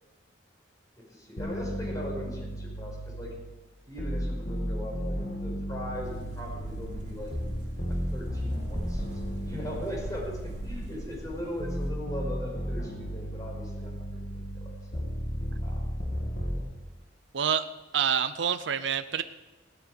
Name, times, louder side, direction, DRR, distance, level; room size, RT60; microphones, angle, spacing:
voice 1, 1.1-3.3 3.9-7.3 7.9-15.0 15.6-15.9 16.5-16.6, equal, 20° left, -2 dB, 5.3 m, -39 dB
sound 1, 1.4-3.5 4.0-11.1 11.6-16.6, equal, 50° left, 1.9 m, -34 dB
sound 2, 5.9-11.9, equal, 45° right, 4.3 m, -41 dB
voice 2, 17.3-17.6 17.9-19.2, right 8 dB, 75° right, 10 dB, 0.6 m, -27 dB
17.0 x 13.0 x 5.2 m, 1.2 s
head